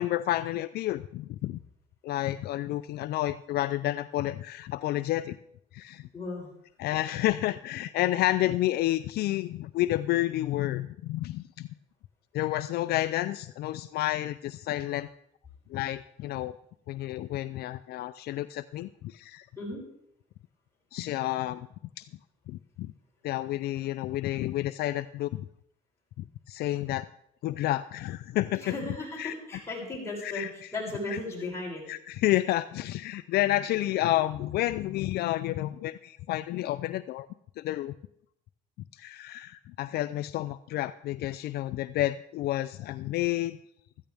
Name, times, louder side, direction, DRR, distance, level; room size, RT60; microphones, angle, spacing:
voice 1, 0.0-1.6 2.0-5.4 5.7-6.1 6.8-11.7 12.3-15.1 15.7-16.6 16.9-19.5 20.9-21.7 22.0-22.1 22.5-22.9 23.2-25.4 26.2-27.1 27.4-28.7 29.2-29.3 30.2-30.5 31.1-31.2 31.9-37.3 37.6-37.9 38.9-43.6, left 15 dB, 70° left, 13 dB, 0.4 m, -30 dB
voice 2, 6.1-6.5 19.5-19.8 28.6-31.8, left 2 dB, 15° left, -5 dB, 6.8 m, -36 dB
15.0 x 14.0 x 3.5 m, 0.74 s
cardioid pair, 110°, 17 cm